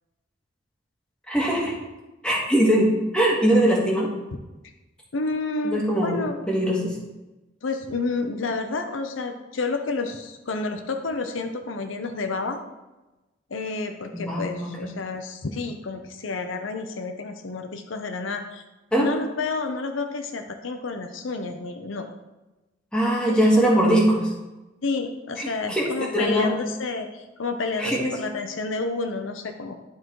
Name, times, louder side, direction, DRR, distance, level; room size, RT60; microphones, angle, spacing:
voice 1, 1.3-1.7 2.2-2.9 3.1-4.1 5.6-6.2 6.5-6.9 14.1-14.7 18.9-19.1 22.9-24.3 25.4-26.5 27.8-28.2, right 1 dB, 5° left, -4 dB, 1.8 m, -21 dB
voice 2, 5.1-6.4 7.6-12.6 13.5-18.6 19.0-22.1 23.3-23.5 24.8-29.8, left 3 dB, 85° left, 6 dB, 0.7 m, -30 dB
11.0 x 3.8 x 4.6 m, 1.1 s
head